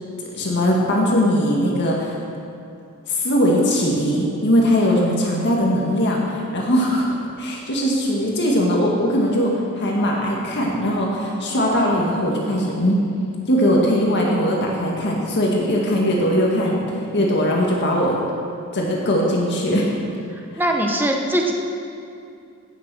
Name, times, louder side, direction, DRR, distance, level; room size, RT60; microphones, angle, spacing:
voice 1, 0.3-2.1 3.1-7.1 7.4-13.0 13.5-16.8 17.1-18.2 18.7-19.9, equal, 55° left, -2 dB, 1.9 m, -20 dB
voice 2, 20.6-21.5, right 1 dB, 10° right, 1 dB, 1.2 m, -20 dB
17.0 x 6.8 x 6.2 m, 2.5 s
head